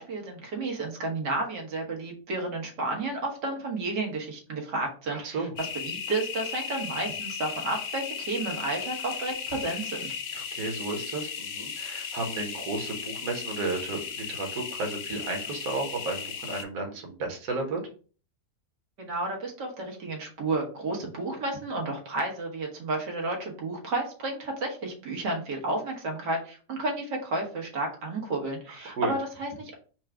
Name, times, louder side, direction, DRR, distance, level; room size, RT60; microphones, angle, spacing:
voice 1, 0.0-10.1 19.0-29.7, right 2 dB, 85° right, 1 dB, 1.9 m, -32 dB
voice 2, 5.1-5.5 10.3-17.8 28.7-29.1, right 3 dB, 60° right, 1 dB, 1.5 m, -33 dB
sound 1, 5.6-16.6, left 7 dB, 70° left, 0.6 m, -36 dB
4.7 x 2.3 x 4.8 m, 0.38 s
omnidirectional pair, 1.8 m